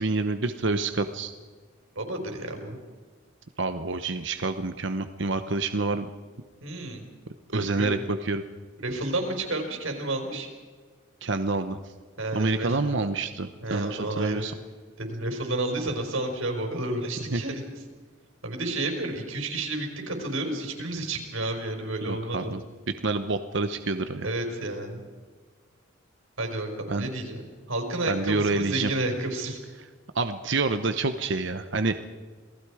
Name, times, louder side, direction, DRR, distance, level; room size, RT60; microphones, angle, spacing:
voice 1, 0.0-1.3 3.6-6.1 7.5-8.4 11.2-11.8 12.3-14.5 17.3-17.4 22.1-22.6 23.0-24.3 26.9-27.1 28.1-28.9 30.1-31.9, right 3 dB, 65° right, 9 dB, 1.0 m, -27 dB
voice 2, 2.0-2.8 6.6-7.1 7.5-7.9 8.8-10.5 12.2-12.8 13.6-14.5 15.0-17.6 18.4-22.6 24.2-25.0 26.4-27.4 27.7-29.6, right 2 dB, 80° right, 3 dB, 5.0 m, -31 dB
27.5 x 19.0 x 5.0 m, 1.5 s
head